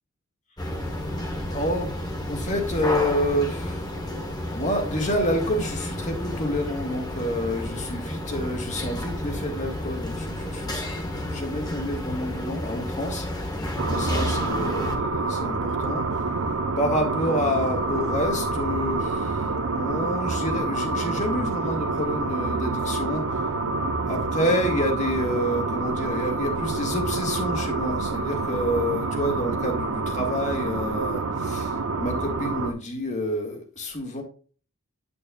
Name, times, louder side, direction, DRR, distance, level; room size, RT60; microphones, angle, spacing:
sound 1, 0.6-15.0, left 1 dB, 20° left, 1.3 m, -31 dB
voice 1, 1.5-1.9 2.3-3.9 4.5-13.3 13.8-16.0 16.8-23.4 24.1-34.2, equal, 35° left, 3 dB, 1.9 m, -28 dB
sound 2, 13.8-32.7, right 3 dB, 75° right, 0.9 m, -27 dB
8.8 x 8.5 x 2.4 m, 0.39 s
head